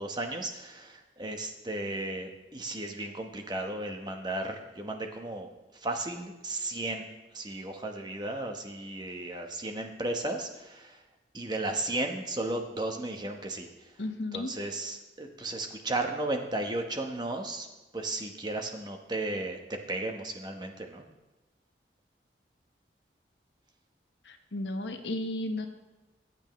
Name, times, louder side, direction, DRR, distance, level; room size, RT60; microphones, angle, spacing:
voice 1, 0.0-5.5 5.8-7.1 7.3-11.0 11.3-13.7 14.3-17.7 17.9-19.6 19.9-21.1, right 2 dB, 25° right, 4 dB, 1.1 m, -34 dB
voice 2, 14.0-14.5 24.2-25.7, left 2 dB, 90° left, 5 dB, 1.2 m, -34 dB
24.5 x 8.3 x 3.2 m, 1.1 s
head